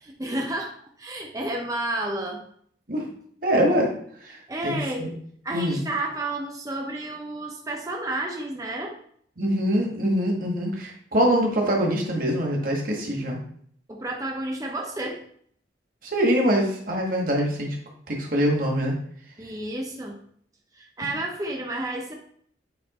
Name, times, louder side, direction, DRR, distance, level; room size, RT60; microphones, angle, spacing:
voice 1, 0.0-2.4 4.5-5.1 5.4-9.0 13.9-15.2 19.4-20.2 20.7-22.1, right 1 dB, 20° right, 1 dB, 0.7 m, -31 dB
voice 2, 3.4-3.9 4.2-5.1 5.5-5.8 9.4-13.4 16.1-17.8 18.1-18.9, equal, 50° right, 0 dB, 1.5 m, -24 dB
8.6 x 3.1 x 4.2 m, 0.62 s
head